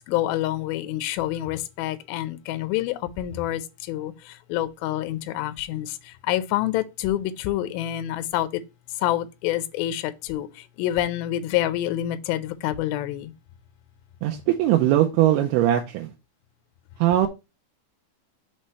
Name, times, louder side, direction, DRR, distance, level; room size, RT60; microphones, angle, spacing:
voice 1, 0.1-3.6 3.9-4.1 4.5-5.9 6.3-8.6 9.0-10.5 10.8-13.3, left 13 dB, 80° left, 2.3 m, -27 dB
voice 2, 14.2-16.1 17.0-17.3, right 13 dB, 85° right, 2.6 m, -20 dB
6.2 x 3.2 x 5.5 m
omnidirectional pair, 4.6 m